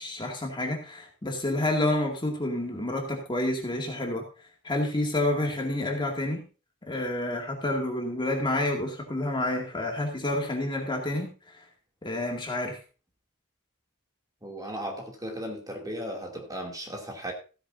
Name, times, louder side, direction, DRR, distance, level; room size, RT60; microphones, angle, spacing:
voice 1, 0.0-4.2 4.6-6.4 6.9-11.6 12.0-12.8, left 1 dB, 20° left, 2 dB, 2.1 m, -29 dB
voice 2, 14.4-17.3, equal, 15° right, 1 dB, 2.5 m, -36 dB
16.0 x 9.9 x 2.6 m, 0.33 s
head